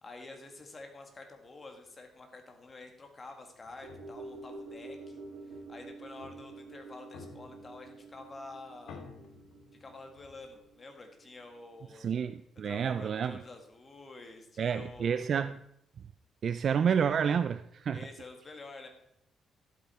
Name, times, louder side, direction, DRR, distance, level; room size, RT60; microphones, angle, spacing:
voice 1, 0.0-5.2 5.5-9.1 9.8-12.2 12.6-15.3 17.9-18.9, left 3 dB, 30° left, 1.7 m, -49 dB
sound 1, 3.6-10.7, left 5 dB, 90° left, 1.4 m, -55 dB
sound 2, 3.8-12.3 12.6-12.7, right 3 dB, 80° right, 1.5 m, -49 dB
voice 2, 11.9-13.4 14.6-15.5 16.4-18.0, right 7 dB, 50° right, 0.3 m, -29 dB
11.5 x 8.1 x 4.2 m
cardioid pair, 135°, 0 cm